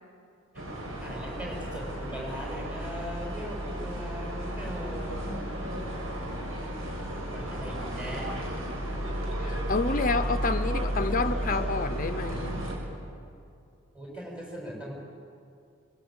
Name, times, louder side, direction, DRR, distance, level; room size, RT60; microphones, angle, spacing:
sound 1, 0.5-12.8, equal, 85° right, 6.7 m, -33 dB
voice 1, 1.0-5.2 7.3-8.3 13.9-14.9, equal, 5° right, -2 dB, 6.4 m, -39 dB
voice 2, 9.4-12.6, left 3 dB, 45° left, 10 dB, 0.8 m, -29 dB
23.0 x 21.5 x 8.9 m, 2.5 s
head